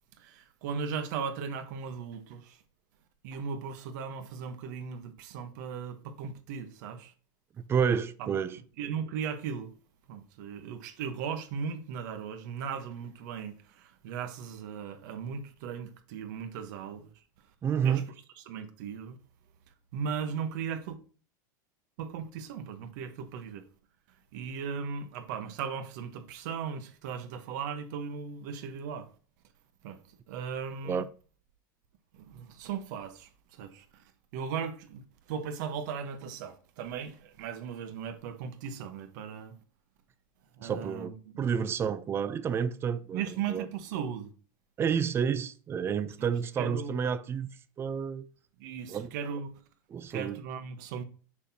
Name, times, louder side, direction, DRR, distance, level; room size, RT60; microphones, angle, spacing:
voice 1, 0.2-2.6 3.2-7.1 8.2-8.3 8.8-9.7 10.1-17.1 17.8-18.0 18.5-19.2 19.9-21.0 22.0-23.7 24.3-29.1 29.8-30.0 30.3-31.0 32.1-33.3 33.6-33.8 34.3-35.0 35.3-39.5 40.6-41.4 43.1-44.3 46.2-46.3 46.6-47.0 48.6-49.6 50.1-51.0, right 6 dB, 65° right, 1.1 m, -37 dB
voice 2, 7.6-8.6 17.6-18.1 30.8-31.0 40.6-41.1 41.4-43.7 44.8-47.5 47.8-48.3 48.9-49.1 49.9-50.4, right 7 dB, 25° right, 0.5 m, -30 dB
6.4 x 5.6 x 2.8 m
supercardioid pair, 130°, 11 cm